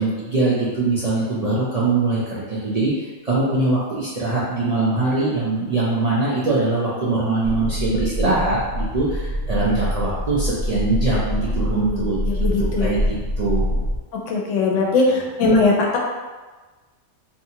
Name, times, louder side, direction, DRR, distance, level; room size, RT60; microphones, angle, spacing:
voice 1, 0.0-12.2 12.6-13.8 14.7-14.8, right 2 dB, 65° right, -8 dB, 0.4 m, -22 dB
sound 1, 7.4-14.0, equal, 80° right, 1.1 m, -25 dB
voice 2, 11.6-12.9 14.3-16.0, left 3 dB, 80° left, -1 dB, 0.9 m, -20 dB
2.7 x 2.4 x 2.7 m, 1.3 s
omnidirectional pair, 1.3 m